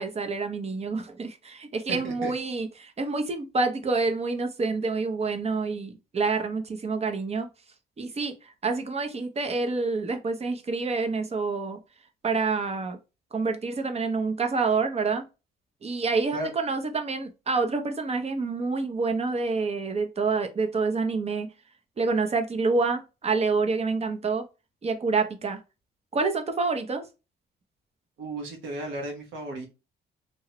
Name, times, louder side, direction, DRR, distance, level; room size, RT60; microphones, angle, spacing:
voice 1, 0.0-7.5 8.0-11.8 12.2-13.0 13.3-15.2 15.8-21.5 22.0-24.4 24.8-25.6 26.1-27.0, right 4 dB, 30° right, 0.6 m, -27 dB
voice 2, 1.9-2.3 16.3-16.5 28.2-29.7, right 2 dB, 85° right, 1.1 m, -34 dB
2.9 x 2.3 x 2.9 m
cardioid pair, 90°, 20 cm